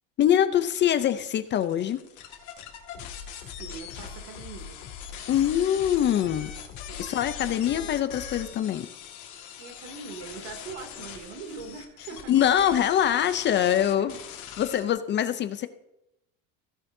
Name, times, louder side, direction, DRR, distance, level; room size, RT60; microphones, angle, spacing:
voice 1, 0.2-2.0 5.3-6.5 7.0-8.9 12.3-14.1 14.6-15.7, left 10 dB, 30° left, 11 dB, 0.5 m, -24 dB
sound 1, 0.6-14.9, left 9 dB, 50° left, 1.9 m, -42 dB
sound 2, 2.9-8.6, left 6 dB, 75° left, 2.7 m, -44 dB
voice 2, 3.4-4.8 6.9-7.1 9.6-12.3 13.8-14.1, right 5 dB, 70° right, 4 dB, 2.7 m, -42 dB
15.5 x 9.5 x 2.7 m, 0.86 s
cardioid pair, 145°, 38 cm